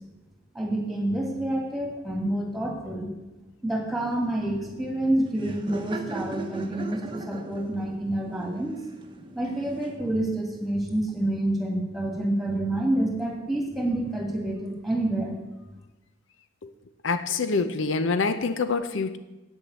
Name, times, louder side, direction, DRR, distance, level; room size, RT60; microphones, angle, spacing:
voice 1, 0.5-3.1 3.6-8.8 9.3-15.4, right 1 dB, ahead, 0 dB, 2.0 m, -28 dB
Laughter, 3.9-10.2, right 2 dB, 25° right, 0.8 m, -40 dB
voice 2, 17.0-19.2, left 4 dB, 80° left, 10 dB, 0.6 m, -25 dB
8.8 x 7.1 x 7.9 m, 1.1 s
head